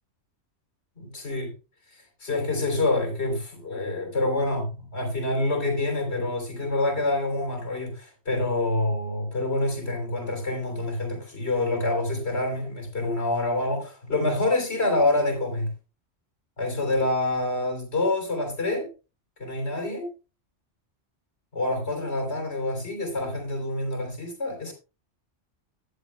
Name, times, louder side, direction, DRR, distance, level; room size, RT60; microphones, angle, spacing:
voice 1, 1.0-1.5 2.2-15.7 16.6-18.9 19.4-20.1 21.5-24.7, left 2 dB, 60° left, 3.7 m, -27 dB
14.5 x 10.0 x 2.2 m
omnidirectional pair, 1.2 m